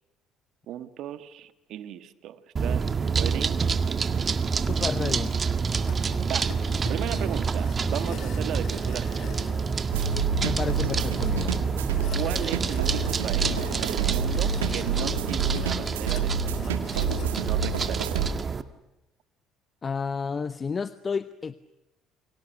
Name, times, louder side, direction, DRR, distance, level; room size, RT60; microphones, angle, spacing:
voice 1, 0.7-3.6 6.2-6.5 6.9-9.4 12.1-16.8 17.3-18.6, right 11 dB, 65° right, 1.7 m, -36 dB
sound 1, 2.6-18.6, right 5 dB, 35° right, 1.7 m, -28 dB
voice 2, 4.5-5.3 10.4-11.6 19.8-21.5, left 5 dB, 35° left, 0.9 m, -31 dB
sound 2, 5.2-17.8, left 9 dB, 60° left, 2.4 m, -46 dB
sound 3, 9.9-18.3, right 6 dB, 85° right, 2.2 m, -28 dB
29.5 x 24.5 x 6.7 m
hypercardioid pair, 60°, 0 cm